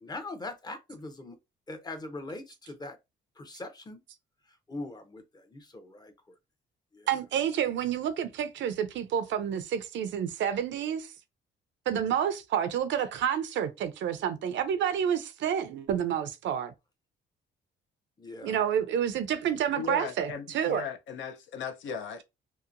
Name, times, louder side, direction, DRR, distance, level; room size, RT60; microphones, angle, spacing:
voice 1, 0.0-1.4 1.7-3.0 3.4-4.0 4.7-6.1 6.9-7.1 18.2-18.6, left 2 dB, 20° left, 0.6 m, -41 dB
voice 2, 7.1-11.1 11.9-16.7 18.4-20.8, right 9 dB, 70° right, 0.5 m, -29 dB
voice 3, 19.7-22.2, left 7 dB, 70° left, 0.6 m, -37 dB
2.8 x 2.2 x 2.5 m
cardioid pair, 90°, 20 cm